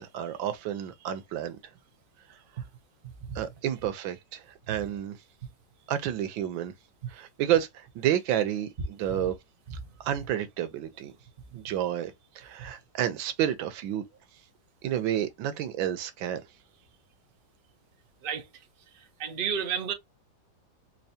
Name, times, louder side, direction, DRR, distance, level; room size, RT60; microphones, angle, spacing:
voice 1, 0.0-1.6 3.3-5.2 5.9-6.7 7.1-9.4 10.0-11.1 11.5-12.1 12.4-14.0 14.8-16.4, right 11 dB, 90° right, 1.5 m, -30 dB
voice 2, 19.2-19.9, right 7 dB, 45° right, 0.7 m, -30 dB
4.5 x 2.7 x 2.7 m
omnidirectional pair, 2.0 m